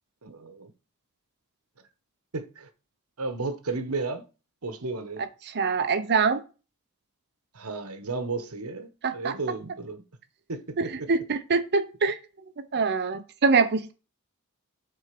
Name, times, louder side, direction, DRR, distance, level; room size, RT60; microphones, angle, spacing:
voice 1, 0.2-0.7 2.3-2.7 3.2-4.3 4.6-5.2 7.5-10.0 10.5-10.9, right 3 dB, 80° right, 1.2 m, -33 dB
voice 2, 5.5-6.4 9.0-9.3 10.8-12.2 12.7-13.9, right 4 dB, 50° right, 0.7 m, -24 dB
8.4 x 4.3 x 6.0 m
head